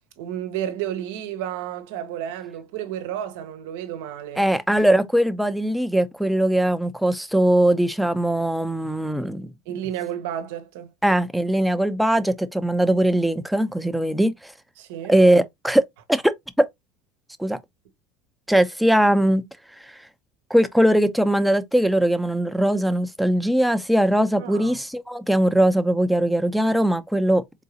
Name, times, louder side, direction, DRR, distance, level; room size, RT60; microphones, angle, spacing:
voice 1, 0.2-4.5 9.7-10.9 14.8-15.2 24.4-24.8, right 10 dB, 75° right, 1.0 m, -32 dB
voice 2, 4.4-9.5 11.0-14.5 15.1-15.8 16.1-16.7 17.4-17.6 18.5-19.4 19.8-20.0 20.5-27.4, right 1 dB, ahead, 0.6 m, -20 dB
3.9 x 3.8 x 2.8 m
hypercardioid pair, 90°, 0 cm